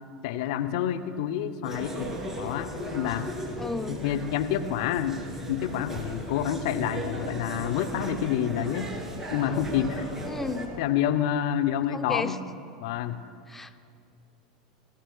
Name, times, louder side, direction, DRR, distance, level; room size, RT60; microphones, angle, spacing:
voice 1, 0.2-3.3 3.9-5.2 5.5-8.9 9.3-10.1 10.8-12.4 12.8-13.2, left 10 dB, 60° left, 11 dB, 0.6 m, -28 dB
sound 1, 1.6-10.7, right 1 dB, 15° right, 2.9 m, -36 dB
voice 2, 3.6-4.0 10.2-10.7 11.9-12.4 13.5-13.8, left 3 dB, 10° left, 10 dB, 0.5 m, -33 dB
19.0 x 15.0 x 2.3 m, 2.3 s
hypercardioid pair, 85°, 3 cm